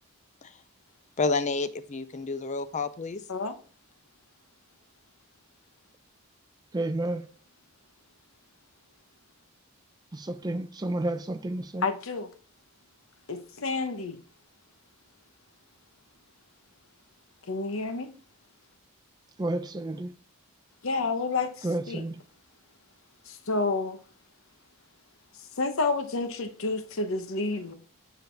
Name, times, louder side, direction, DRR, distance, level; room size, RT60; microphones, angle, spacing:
voice 1, 1.2-3.2, left 4 dB, 30° left, 0.5 m, -29 dB
voice 2, 6.7-7.3 10.1-11.9 19.4-20.1 21.6-22.2, right 2 dB, 20° right, 0.5 m, -31 dB
voice 3, 11.8-12.3 13.3-14.2 17.5-18.1 20.8-22.0 23.3-24.0 25.6-27.7, left 3 dB, 60° left, 0.8 m, -29 dB
9.2 x 4.0 x 3.3 m
head